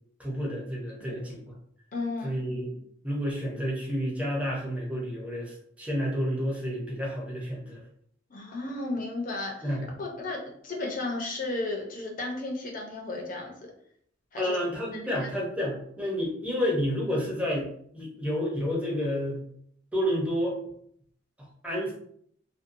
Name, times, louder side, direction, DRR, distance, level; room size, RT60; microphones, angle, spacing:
voice 1, 0.2-1.5 2.2-2.7 3.0-7.8 9.6-9.8 14.4-17.7 17.9-19.4 19.9-20.6 21.6-21.9, equal, 5° right, -4 dB, 0.7 m, -30 dB
voice 2, 1.9-2.4 8.3-13.7 14.3-14.6 14.9-15.3, left 2 dB, 45° left, 1 dB, 0.6 m, -34 dB
2.6 x 2.1 x 2.6 m, 0.65 s
head